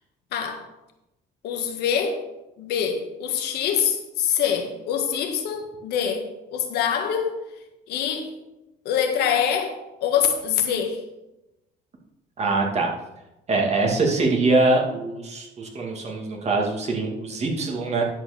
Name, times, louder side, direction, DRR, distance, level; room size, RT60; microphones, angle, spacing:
voice 1, 1.4-2.2 2.6-7.4 7.9-8.3 8.8-11.0, left 8 dB, 75° left, 4 dB, 1.7 m, -25 dB
voice 2, 12.4-12.9 13.5-18.0, right 3 dB, 40° right, 0 dB, 2.4 m, -23 dB
11.0 x 4.8 x 6.7 m, 0.96 s
cardioid pair, 110°, 17 cm